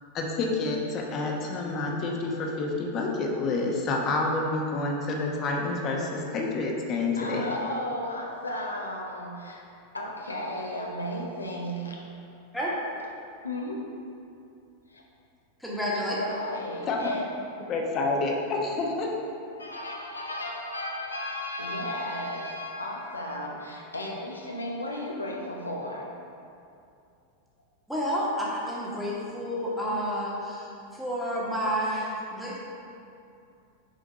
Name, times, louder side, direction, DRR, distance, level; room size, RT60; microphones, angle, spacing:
voice 1, 0.1-7.5 16.9-17.1 17.7-19.1, left 3 dB, 30° left, 0 dB, 1.1 m, -28 dB
voice 2, 7.1-9.6 9.9-12.0 13.4-13.8 14.9-15.0 16.1-17.3 19.6-26.1, left 1 dB, 80° left, -1 dB, 0.8 m, -34 dB
voice 3, 15.6-16.1 27.9-32.6, equal, ahead, -6 dB, 1.6 m, -30 dB
6.6 x 5.0 x 5.0 m, 2.6 s
figure-of-eight pair, 90°, 0 cm